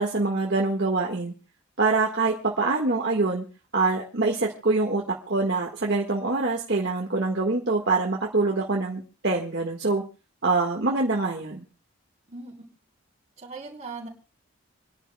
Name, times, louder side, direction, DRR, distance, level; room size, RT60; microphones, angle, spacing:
voice 1, 0.0-1.3 1.8-3.4 3.7-10.0 10.4-11.6, right 3 dB, 55° right, -1 dB, 1.5 m, -25 dB
voice 2, 13.4-14.1, right 3 dB, 30° right, -1 dB, 3.6 m, -38 dB
28.0 x 11.0 x 2.2 m, 0.34 s
head